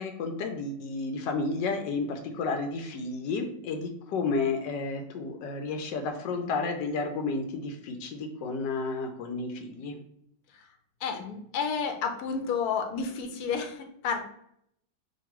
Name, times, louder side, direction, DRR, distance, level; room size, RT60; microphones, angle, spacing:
voice 1, 0.0-10.0, left 4 dB, 90° left, 5 dB, 1.3 m, -32 dB
voice 2, 11.0-14.2, left 6 dB, 70° left, 4 dB, 1.0 m, -31 dB
2.9 x 2.6 x 4.3 m, 0.71 s
omnidirectional pair, 1.8 m